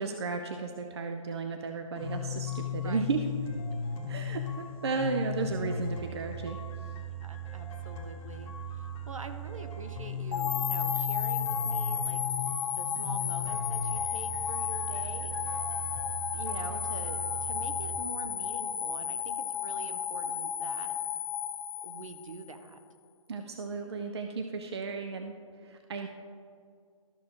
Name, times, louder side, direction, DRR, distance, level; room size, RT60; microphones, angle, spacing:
voice 1, 0.0-3.2 4.1-6.6 23.3-25.3 25.6-26.1, right 4 dB, 50° right, 5 dB, 0.5 m, -34 dB
sound 1, 2.0-18.0, left 3 dB, 20° left, 1.0 m, -37 dB
voice 2, 5.0-5.3 7.2-15.7 16.1-21.0 21.8-22.8, right 2 dB, 70° right, 7 dB, 0.9 m, -46 dB
sound 2, 10.3-22.5, left 7 dB, 40° left, 0.6 m, -33 dB
13.5 x 6.2 x 2.9 m, 2.2 s
figure-of-eight pair, 140°, 18 cm